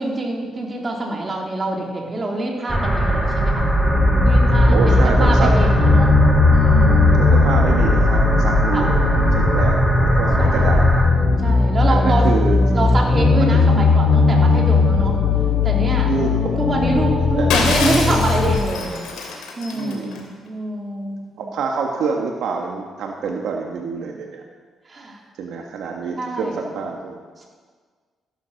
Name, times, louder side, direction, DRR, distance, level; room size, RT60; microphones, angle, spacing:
voice 1, 0.0-3.7 4.2-6.1 6.5-7.2 8.7-8.9 10.4-10.7 11.4-12.3 12.7-15.2 15.6-16.1 16.6-19.0 19.6-21.4 24.9-25.2 26.2-26.7 27.4-27.5, right 2 dB, 35° right, 0 dB, 3.3 m, -25 dB
sound 1, 2.7-11.0, right 1 dB, 5° right, 3.1 m, -19 dB
sound 2, 3.8-18.6, left 4 dB, 45° left, 4.6 m, -17 dB
voice 2, 4.7-5.6 7.1-8.9 9.3-10.9 11.8-13.0 13.6-13.7 16.1-16.3 17.4-18.2 19.7-20.3 21.4-24.4 25.4-27.2, right 5 dB, 75° right, 1 dB, 1.5 m, -26 dB
Shatter, 17.5-20.2, left 4 dB, 90° left, 2.8 m, -25 dB
14.5 x 11.0 x 6.5 m, 1.5 s
cardioid pair, 90°, 0 cm